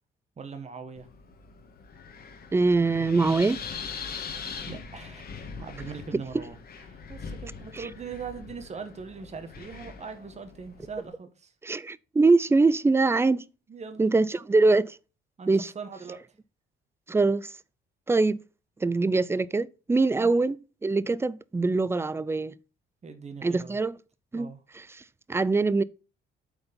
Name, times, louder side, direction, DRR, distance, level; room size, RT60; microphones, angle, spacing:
voice 1, 0.4-1.1 4.6-5.3 5.6-6.6 6.9-11.5 13.7-14.0 15.4-16.2 20.2-20.3 23.0-23.8 24.3-24.6, right 5 dB, 35° right, 1.2 m, -41 dB
Wind, 1.0-11.1, left 5 dB, 50° left, 1.6 m, -42 dB
voice 2, 2.5-3.6 6.1-6.2 7.7-7.9 11.6-13.5 14.0-15.0 15.5-15.7 17.1-17.5 18.1-18.4 18.8-22.5 23.4-23.9 24.3-24.5 24.7-25.0 25.3-25.8, right 3 dB, 10° right, 0.4 m, -23 dB
8.0 x 4.4 x 5.2 m
cardioid pair, 90°, 20 cm